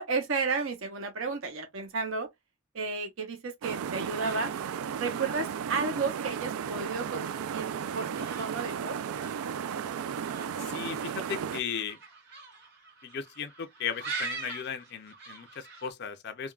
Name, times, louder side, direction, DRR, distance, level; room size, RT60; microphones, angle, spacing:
voice 1, 0.0-2.3 2.7-4.5 5.0-9.0, right 4 dB, 70° right, 0.7 m, -33 dB
sound 1, 3.6-11.6, right 8 dB, 85° right, 0.3 m, -34 dB
sound 2, 4.2-15.9, right 4 dB, 50° right, 1.6 m, -45 dB
voice 2, 10.6-12.0 13.0-16.5, left 7 dB, 50° left, 0.4 m, -36 dB
3.5 x 2.2 x 2.3 m
head